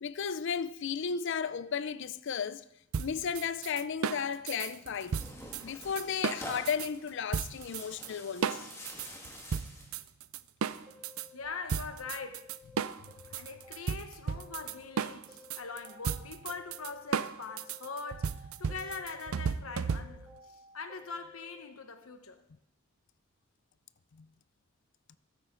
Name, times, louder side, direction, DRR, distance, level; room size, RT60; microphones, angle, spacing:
voice 1, 0.0-2.6 3.0-5.2 5.6-8.7 24.1-24.3, left 7 dB, 60° left, 0.5 m, -34 dB
sound 1, 2.9-6.9 7.3-8.1 8.4-11.3 11.7-20.4, right 6 dB, 90° right, 0.5 m, -35 dB
Tearing, 4.7-10.0, left 1 dB, 15° left, 1.8 m, -47 dB
sound 2, 10.9-12.7 13.1-15.0 15.3-17.2 17.5-19.4 19.7-21.6, left 3 dB, 15° right, 3.0 m, -55 dB
voice 2, 11.3-12.5 13.3-22.4, left 4 dB, 90° left, 1.2 m, -42 dB
15.0 x 13.0 x 3.8 m
head